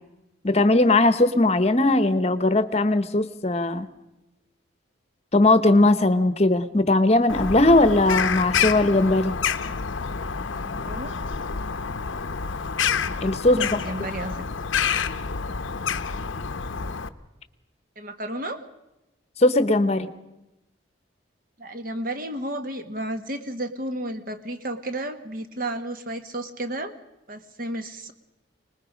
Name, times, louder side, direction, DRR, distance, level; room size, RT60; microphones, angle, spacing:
voice 1, 0.4-3.9 5.3-9.4 13.2-13.8 19.4-20.1, left 2 dB, 35° left, 12 dB, 0.9 m, -19 dB
Bird vocalization bird call bird song, 7.3-17.1, left 6 dB, 80° left, 0.8 m, -28 dB
voice 2, 10.5-11.1 13.5-14.5 18.0-18.6 21.6-26.9 27.3-28.1, right 1 dB, 45° right, 8 dB, 1.4 m, -32 dB
25.0 x 20.0 x 5.1 m, 0.97 s
head